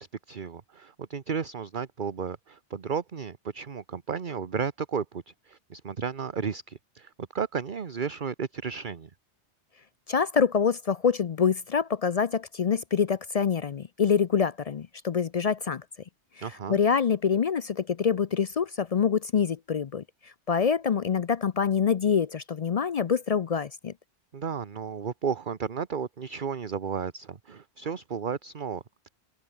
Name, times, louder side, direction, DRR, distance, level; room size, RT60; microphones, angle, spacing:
voice 1, 0.0-9.1 16.4-16.8 24.3-29.1, right 6 dB, 45° right, 1.2 m, -33 dB
voice 2, 10.1-15.8 16.4-23.9, left 6 dB, 55° left, 0.4 m, -26 dB
open air
omnidirectional pair, 1.2 m